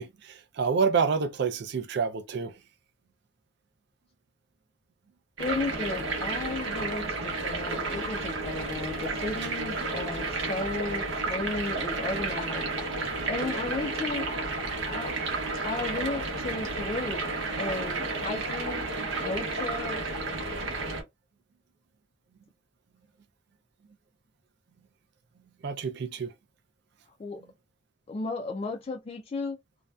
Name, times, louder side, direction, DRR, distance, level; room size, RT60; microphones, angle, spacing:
voice 1, 0.0-2.6 9.4-9.6 25.6-26.3, right 5 dB, 60° right, 0.4 m, -28 dB
voice 2, 5.4-12.7 13.3-14.3 14.9-15.1 15.6-17.3 17.6-18.8 19.2-20.0 27.2-27.4 28.1-29.6, left 3 dB, 30° left, 0.3 m, -34 dB
sound 1, 5.4-21.0, right 3 dB, 80° right, 0.8 m, -32 dB
2.5 x 2.1 x 2.2 m
head